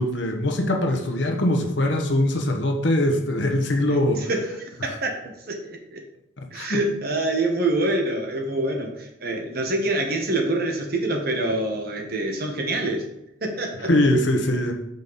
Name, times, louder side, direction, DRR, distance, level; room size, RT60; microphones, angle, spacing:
voice 1, 0.0-4.3 6.4-6.8 13.9-14.7, left 1 dB, 70° left, 4 dB, 1.0 m, -22 dB
voice 2, 3.9-6.0 6.5-13.0 13.4-13.9, right 2 dB, 55° right, 2 dB, 1.2 m, -26 dB
6.8 x 5.3 x 4.1 m, 0.86 s
head